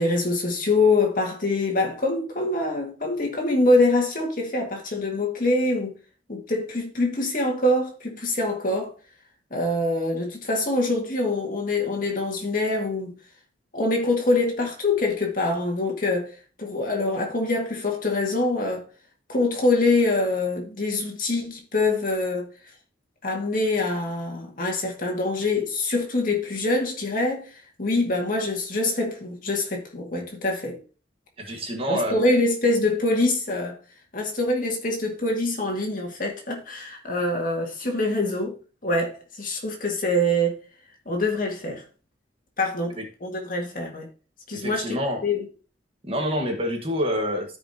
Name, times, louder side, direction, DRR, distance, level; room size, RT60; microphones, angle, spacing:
voice 1, 0.0-6.0 6.3-8.9 9.5-13.2 13.7-18.9 19.3-22.5 23.2-30.8 31.9-33.8 34.1-38.6 38.8-40.6 41.1-41.8 42.6-44.1 44.5-45.0 45.2-45.5, left 2 dB, 50° left, 2.1 m, -24 dB
voice 2, 31.4-32.2 43.0-43.1 44.5-45.2 46.1-47.6, equal, 30° right, 1.6 m, -27 dB
13.5 x 5.0 x 2.9 m
head